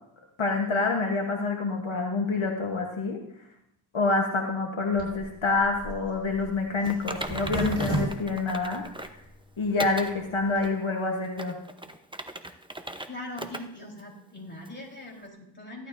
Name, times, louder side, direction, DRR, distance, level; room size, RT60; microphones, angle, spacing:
voice 1, 0.4-3.2 3.9-8.8 9.6-11.6, left 3 dB, 75° left, 1 dB, 1.3 m, -27 dB
Zipper (clothing), 4.9-9.3 9.7-9.8 10.0-10.1 10.3-10.7, right 1 dB, 65° right, 5.2 m, -33 dB
Typing, 6.9-9.2 9.8-10.1 10.6-10.7 11.2-13.1 13.4-13.6 14.0-14.1 14.7-14.8, right 1 dB, 10° right, 0.8 m, -37 dB
voice 2, 13.1-15.9, left 1 dB, 25° left, -2 dB, 4.2 m, -41 dB
16.0 x 11.5 x 2.7 m, 0.76 s
wide cardioid pair, 40°, 48 cm